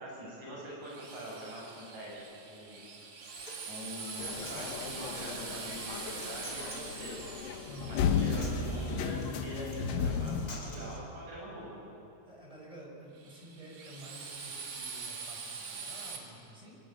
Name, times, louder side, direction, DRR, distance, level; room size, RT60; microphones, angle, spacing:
voice 1, 0.0-2.2 2.5-2.8 3.6-7.2 7.9-11.8, equal, 55° right, -4 dB, 8.4 m, -43 dB
Drill, 0.8-9.8 13.2-16.2, right 5 dB, 80° right, 4.4 m, -44 dB
Human voice, 3.0-11.0, left 2 dB, 30° left, 3.7 m, -51 dB
sound 1, 4.2-10.5, left 6 dB, 80° left, 2.7 m, -34 dB
voice 2, 7.6-8.0 12.3-16.8, right 1 dB, 10° right, -2 dB, 4.9 m, -50 dB
23.5 x 20.5 x 8.7 m, 2.8 s
omnidirectional pair, 4.0 m